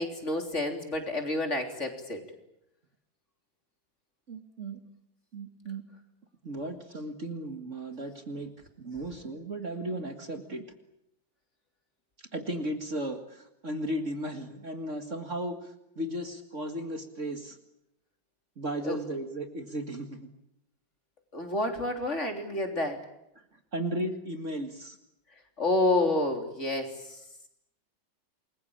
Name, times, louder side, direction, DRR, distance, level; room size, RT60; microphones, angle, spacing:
voice 1, 0.0-2.2 18.8-19.0 21.3-23.0 25.6-26.9, left 2 dB, 40° left, 4 dB, 3.8 m, -29 dB
voice 2, 4.3-4.8 5.3-5.8 6.4-8.5 8.8-10.6 12.3-17.6 18.6-20.3 23.7-25.0, right 1 dB, 40° right, 6 dB, 2.2 m, -35 dB
28.5 x 22.0 x 8.7 m, 0.82 s
omnidirectional pair, 2.0 m